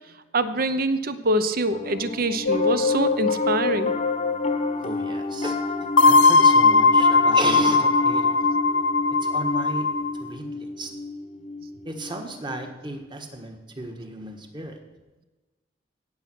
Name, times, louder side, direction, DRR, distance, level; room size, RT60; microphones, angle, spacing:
voice 1, 0.3-3.9, right 1 dB, 50° right, 12 dB, 0.8 m, -24 dB
Piano, 1.7-13.2, left 2 dB, 35° left, 0.9 m, -30 dB
sound 1, 2.5-4.8 6.0-10.2, left 3 dB, 75° left, 0.5 m, -20 dB
voice 2, 4.8-5.6 6.0-8.4 9.1-9.9 10.2-10.9 11.8-14.8, right 2 dB, 25° right, 4 dB, 1.4 m, -34 dB
17.5 x 7.2 x 6.1 m, 1.2 s
head